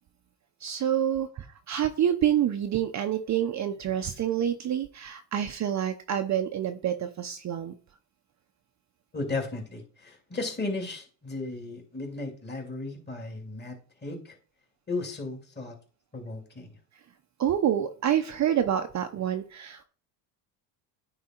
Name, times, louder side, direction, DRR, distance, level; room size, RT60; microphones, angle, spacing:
voice 1, 0.6-7.7 17.4-19.8, right 10 dB, 35° right, 7 dB, 0.8 m, -27 dB
voice 2, 9.1-14.4 14.9-15.8 16.1-16.8, left 3 dB, 20° left, 2 dB, 2.7 m, -35 dB
9.5 x 3.7 x 4.4 m, 0.39 s
supercardioid pair, 100°, 49 cm